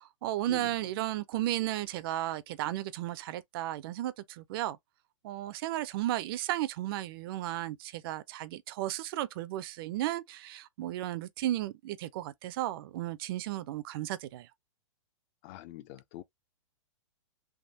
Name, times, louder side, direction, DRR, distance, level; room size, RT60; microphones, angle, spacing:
voice 1, 0.0-4.8 5.2-14.5, right 14 dB, 45° right, 0.4 m, -34 dB
voice 2, 15.4-16.2, left 14 dB, 35° left, 0.4 m, -45 dB
3.5 x 2.3 x 2.6 m
hypercardioid pair, 130°, 17 cm